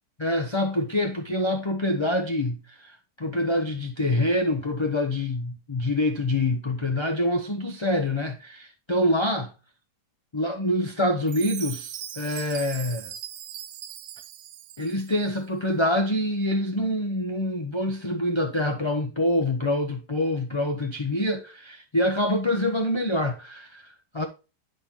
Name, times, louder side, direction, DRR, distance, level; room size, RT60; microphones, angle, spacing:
voice 1, 0.2-9.5 10.3-13.1 14.8-24.2, left 1 dB, 25° left, 0.7 m, -26 dB
Chime, 11.3-15.3, right 10 dB, 80° right, 1.3 m, -39 dB
10.5 x 4.5 x 3.6 m
omnidirectional pair, 1.8 m